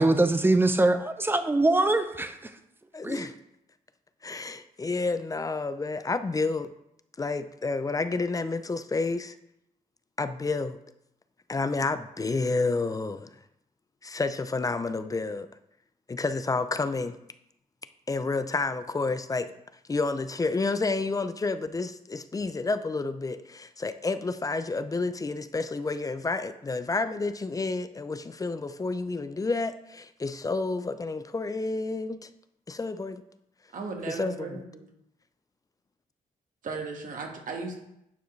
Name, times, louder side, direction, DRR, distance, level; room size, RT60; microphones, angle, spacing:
voice 1, 0.0-2.3 3.0-3.3, right 2 dB, 15° right, 0.7 m, -23 dB
voice 2, 2.9-3.3 4.2-6.7 7.2-9.4 10.2-10.8 11.5-13.4 14.0-15.5 16.1-17.2 18.1-19.5 19.9-32.3 32.7-33.2 34.1-34.6, left 3 dB, 25° left, 0.4 m, -30 dB
voice 3, 33.7-34.9 36.6-37.8, right 4 dB, 60° right, 1.6 m, -36 dB
10.0 x 4.8 x 3.2 m
cardioid pair, 85°, 15 cm